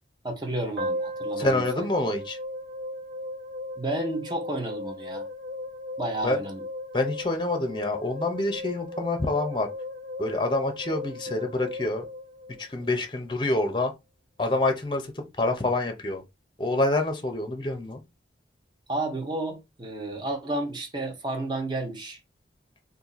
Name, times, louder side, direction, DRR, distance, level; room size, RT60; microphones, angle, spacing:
voice 1, 0.2-1.9 3.8-5.2 6.0-6.6 18.9-22.2, right 2 dB, 25° right, 0.8 m, -31 dB
sound 1, 0.8-13.0, left 1 dB, 75° right, 1.3 m, -36 dB
voice 2, 1.4-2.4 6.2-6.4 6.9-9.7 10.2-12.1 12.6-13.9 14.4-16.2 16.6-18.0, left 2 dB, 25° left, 0.6 m, -27 dB
2.7 x 2.6 x 3.9 m
head